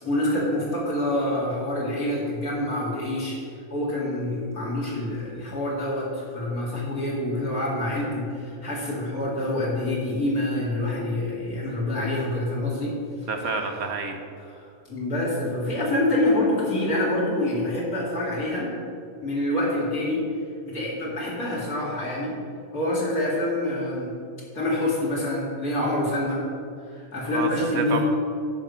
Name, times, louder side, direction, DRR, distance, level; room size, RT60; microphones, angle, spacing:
voice 1, 0.0-3.4 3.7-13.0 14.5-18.7 19.2-20.2 20.7-22.3 22.7-24.1 24.5-26.4 26.9-28.0, left 1 dB, 75° left, -5 dB, 2.9 m, -26 dB
voice 2, 13.3-14.2 27.3-28.0, right 4 dB, 75° right, 4 dB, 1.4 m, -28 dB
9.9 x 4.9 x 6.7 m, 2.4 s
omnidirectional pair, 1.5 m